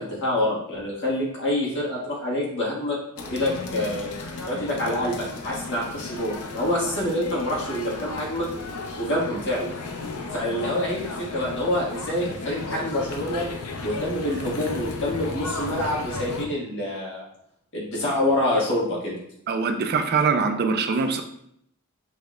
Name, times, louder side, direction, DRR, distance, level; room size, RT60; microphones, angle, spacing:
voice 1, 0.0-8.5 9.0-9.7 10.3-13.5 13.8-17.2 17.7-19.2, left 1 dB, 55° left, -4 dB, 1.7 m, -27 dB
sound 1, 3.2-16.5, left 3 dB, 85° left, 0.6 m, -34 dB
voice 2, 19.5-21.2, right 5 dB, 45° right, 7 dB, 0.4 m, -23 dB
6.2 x 3.1 x 2.4 m, 0.71 s
head